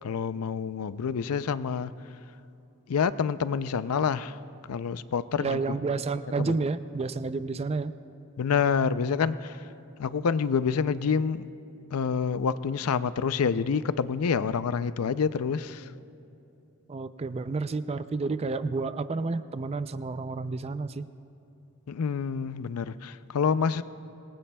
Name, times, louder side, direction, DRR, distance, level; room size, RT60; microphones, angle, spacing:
voice 1, 0.0-1.9 2.9-4.4 4.7-5.8 6.4-6.6 8.4-9.6 10.0-11.4 11.9-15.9 21.9-23.8, left 6 dB, 80° left, 14 dB, 0.5 m, -27 dB
voice 2, 5.4-7.9 16.9-21.1, right 3 dB, 30° right, 12 dB, 0.4 m, -30 dB
26.0 x 20.0 x 2.3 m, 2.8 s
head